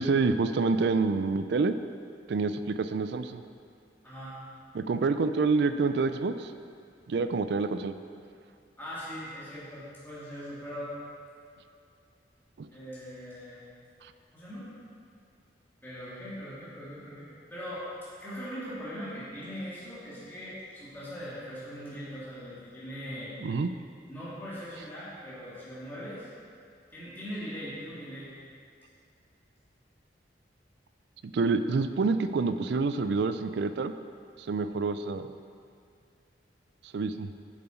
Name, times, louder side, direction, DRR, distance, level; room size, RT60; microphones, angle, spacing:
voice 1, 0.0-1.8 2.3-3.4 4.7-6.5 7.1-7.9 12.6-12.7 23.4-23.7 31.2-33.9 34.5-35.3 36.9-37.3, right 4 dB, 65° right, 11 dB, 0.4 m, -27 dB
voice 2, 4.0-4.4 8.8-10.9 12.7-13.6 14.3-14.7 15.8-17.9 18.2-23.3 24.1-26.3 26.9-28.3, equal, 10° left, -11 dB, 2.0 m, -40 dB
7.9 x 7.4 x 4.4 m, 2.4 s
head